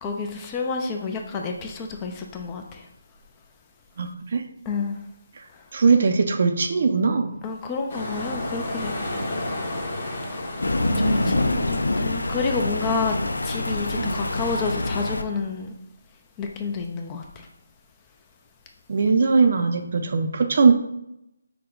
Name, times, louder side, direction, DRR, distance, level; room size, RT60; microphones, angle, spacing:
voice 1, 0.0-2.9 4.7-5.0 7.4-9.0 11.0-13.2 13.4-15.7 16.4-17.5, left 4 dB, 15° left, 3 dB, 0.4 m, -29 dB
voice 2, 4.0-4.4 5.7-7.4 10.8-11.4 14.0-14.2 18.9-20.7, right 4 dB, 45° right, 6 dB, 0.5 m, -20 dB
sound 1, 7.9-14.6, left 1 dB, 40° left, 1.2 m, -33 dB
Thunder, 10.6-15.2, left 2 dB, 85° left, 0.4 m, -25 dB
5.8 x 2.1 x 3.8 m, 0.82 s
figure-of-eight pair, 165°, 0 cm